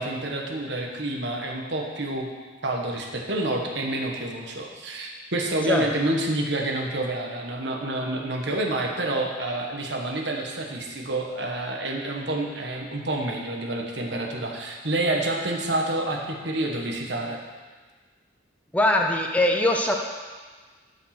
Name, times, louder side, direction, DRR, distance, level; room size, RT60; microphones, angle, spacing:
voice 1, 0.0-2.3 2.6-17.4, right 1 dB, 70° right, 1 dB, 1.4 m, -28 dB
voice 2, 18.7-20.0, left 1 dB, 10° left, 2 dB, 0.7 m, -21 dB
12.5 x 5.3 x 6.0 m, 1.4 s
head